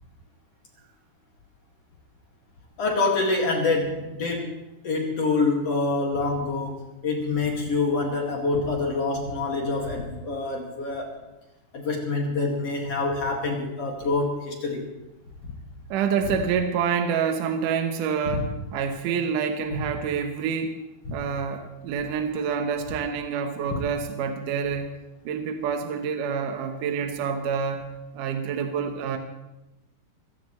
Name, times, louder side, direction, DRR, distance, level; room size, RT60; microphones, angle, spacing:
voice 1, 2.8-4.5 4.8-11.1 11.7-14.9 21.1-21.2, left 3 dB, 45° left, 0 dB, 2.6 m, -26 dB
voice 2, 15.9-20.8 21.1-24.9 25.3-27.9 28.1-29.2, right 6 dB, 70° right, 5 dB, 2.1 m, -27 dB
23.5 x 16.0 x 3.2 m, 0.99 s
omnidirectional pair, 5.0 m